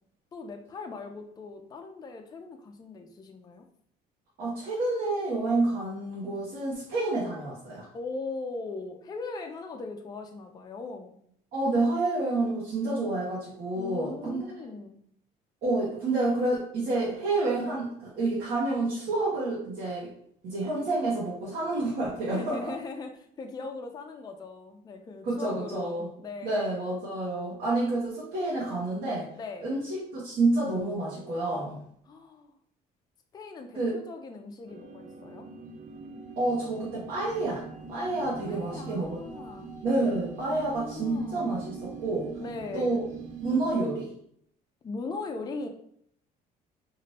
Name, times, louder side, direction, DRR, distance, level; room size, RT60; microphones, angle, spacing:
voice 1, 0.3-3.7 7.9-11.2 13.8-15.0 22.3-26.8 29.4-29.7 32.1-32.5 33.3-35.4 38.4-39.7 40.4-41.5 42.4-43.0 44.8-45.7, left 3 dB, 25° left, 4 dB, 0.4 m, -39 dB
voice 2, 4.4-7.9 11.5-14.4 15.6-20.1 20.4-22.7 25.2-26.1 26.4-29.3 29.6-31.8 33.7-33.9 36.4-37.6 37.9-39.1 39.8-42.3 42.7-43.0 43.4-44.1, right 2 dB, 70° right, -8 dB, 1.0 m, -29 dB
sound 1, 34.7-43.7, right 5 dB, 50° right, 0.4 m, -43 dB
2.7 x 2.5 x 3.2 m, 0.68 s
cardioid pair, 110°, 17 cm